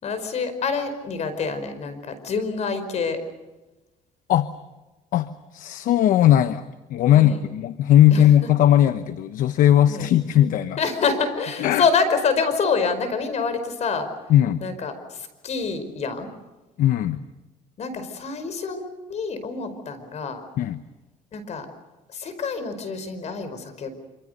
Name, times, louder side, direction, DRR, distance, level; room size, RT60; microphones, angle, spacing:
voice 1, 0.0-3.2 7.1-7.5 8.1-8.3 9.9-10.1 10.8-14.1 14.6-16.3 17.8-20.4 21.3-21.7 22.1-23.9, left 5 dB, 50° left, 10 dB, 5.0 m, -26 dB
voice 2, 5.1-6.6 6.9-10.8 11.6-11.8 14.3-14.6 16.8-17.2 20.6-20.8, left 11 dB, 70° left, 12 dB, 1.0 m, -18 dB
26.5 x 26.0 x 6.7 m, 1.1 s
cardioid pair, 105°, 14 cm